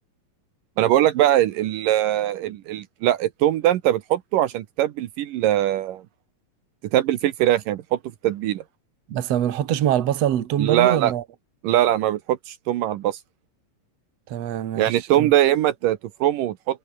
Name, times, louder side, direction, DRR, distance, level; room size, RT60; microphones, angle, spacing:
voice 1, 0.8-6.0 6.9-8.6 10.6-11.1 11.6-13.2 14.8-16.8, right 13 dB, 75° right, 2.6 m, -21 dB
voice 2, 9.1-11.2 14.3-15.3, right 11 dB, 55° right, 2.4 m, -24 dB
omnidirectional pair, 4.0 m